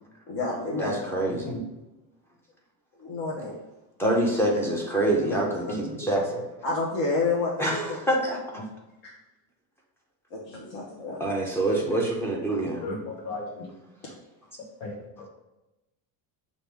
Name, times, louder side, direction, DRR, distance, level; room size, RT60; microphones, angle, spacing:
voice 1, 0.3-1.0 3.0-3.5 6.6-8.0 9.0-9.1 10.3-11.2, left 3 dB, 60° left, -4 dB, 1.0 m, -29 dB
voice 2, 0.8-1.5 4.0-6.4 7.6-8.6 11.2-12.8, right 1 dB, 5° left, -2 dB, 0.4 m, -26 dB
voice 3, 5.2-6.1 12.8-13.7 14.8-15.3, left 1 dB, 80° left, 0 dB, 1.5 m, -35 dB
6.0 x 2.6 x 3.4 m, 0.98 s
cardioid pair, 170°, 46 cm